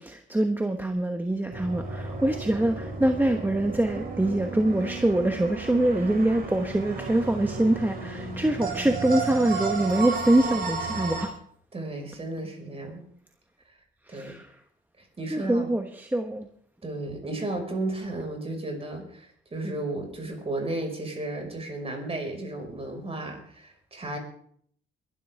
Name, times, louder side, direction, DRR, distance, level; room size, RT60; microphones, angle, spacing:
voice 1, 0.0-11.3 14.1-14.4 15.3-16.5, right 1 dB, 10° right, 5 dB, 1.1 m, -24 dB
sound 1, 1.5-11.3, right 4 dB, 50° right, 3.9 m, -33 dB
voice 2, 11.7-13.1 14.1-14.3 15.0-15.7 16.8-24.2, right 2 dB, 30° right, 3 dB, 5.4 m, -34 dB
21.5 x 12.0 x 3.6 m, 0.62 s
cardioid pair, 90°, 20 cm